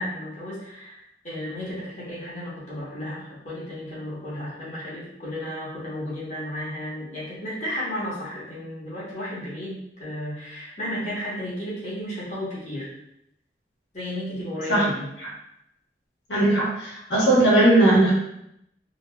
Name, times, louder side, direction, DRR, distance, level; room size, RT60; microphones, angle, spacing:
voice 1, 0.0-12.9 13.9-15.1, left 1 dB, 45° left, -8 dB, 1.2 m, -33 dB
voice 2, 16.3-18.1, right 1 dB, 70° left, -6 dB, 1.1 m, -18 dB
2.9 x 2.6 x 2.3 m, 0.79 s
head